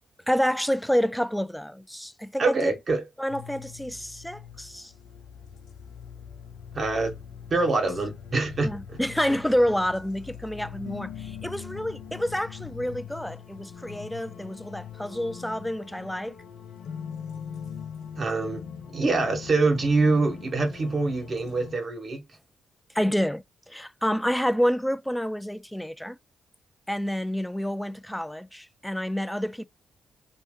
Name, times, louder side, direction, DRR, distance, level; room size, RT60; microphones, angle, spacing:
voice 1, 0.3-2.7 3.2-4.9 8.6-16.3 22.9-26.2 26.9-29.7, equal, 5° left, 0.4 m, -28 dB
voice 2, 2.4-3.0 6.7-7.1 7.5-9.0 18.2-18.6 18.9-22.2, right 3 dB, 50° right, 1.6 m, -25 dB
sound 1, 3.3-21.8, left 7 dB, 70° left, 0.8 m, -42 dB
3.1 x 3.0 x 3.2 m
hypercardioid pair, 50°, 0 cm